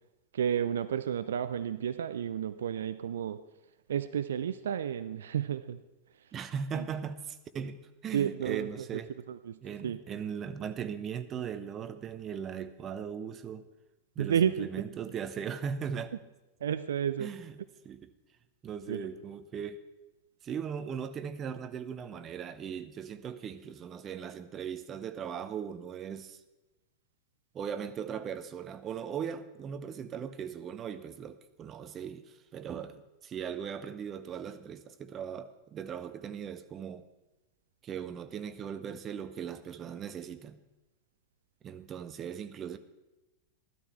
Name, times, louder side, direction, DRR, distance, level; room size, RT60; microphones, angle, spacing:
voice 1, 0.3-3.4 3.9-5.8 6.7-6.9 8.1-9.0 9.3-10.0 14.2-14.7 16.6-17.3 18.9-19.1, right 9 dB, 65° right, 11 dB, 0.5 m, -31 dB
voice 2, 6.3-9.1 9.6-13.7 14.2-16.1 17.2-17.6 17.8-18.1 18.6-19.8 20.4-26.4 27.5-37.0 37.8-40.6 41.6-42.8, right 7 dB, 25° right, 12 dB, 0.8 m, -39 dB
14.0 x 12.5 x 4.4 m, 1.0 s
figure-of-eight pair, 90°, 0 cm